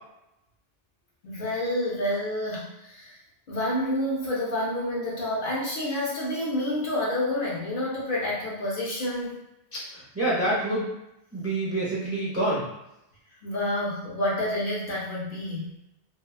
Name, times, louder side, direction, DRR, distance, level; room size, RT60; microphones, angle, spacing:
voice 1, 1.2-3.2 3.5-9.4 13.4-15.7, left 1 dB, 55° left, -5 dB, 0.8 m, -29 dB
voice 2, 9.7-10.9 11.3-12.6, right 1 dB, 20° right, -7 dB, 0.5 m, -27 dB
2.8 x 2.2 x 2.3 m, 0.86 s
omnidirectional pair, 1.1 m